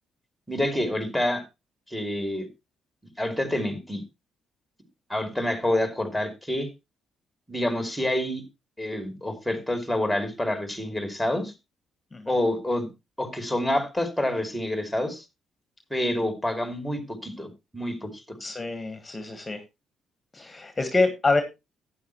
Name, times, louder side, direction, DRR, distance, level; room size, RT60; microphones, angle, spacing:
voice 1, 0.5-1.4 1.9-2.5 3.2-4.0 5.1-6.7 7.5-8.4 8.8-11.5 12.3-12.9 13.2-15.2 15.9-18.4, left 1 dB, ahead, 2.7 m, -27 dB
voice 2, 18.4-19.6 20.3-21.4, left 3 dB, 20° left, 1.5 m, -26 dB
12.0 x 9.4 x 3.1 m
cardioid pair, 90°, 0 cm